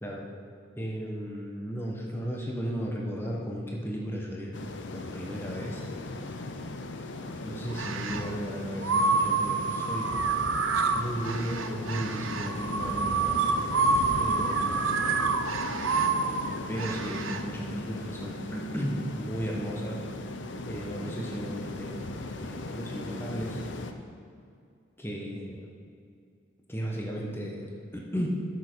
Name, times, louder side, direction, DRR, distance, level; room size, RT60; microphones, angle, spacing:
voice 1, 0.7-4.5 4.9-6.4 7.4-10.1 10.9-13.4 14.2-15.0 16.7-20.0 20.7-22.1 22.4-23.6 25.0-25.7 26.7-28.3, equal, 10° left, -2 dB, 1.1 m, -35 dB
sound 1, 4.5-23.9, left 2 dB, 65° left, 0.7 m, -38 dB
sound 2, 7.7-8.3 8.8-17.4, right 4 dB, 85° right, 0.7 m, -28 dB
13.5 x 6.5 x 4.6 m, 2.4 s
head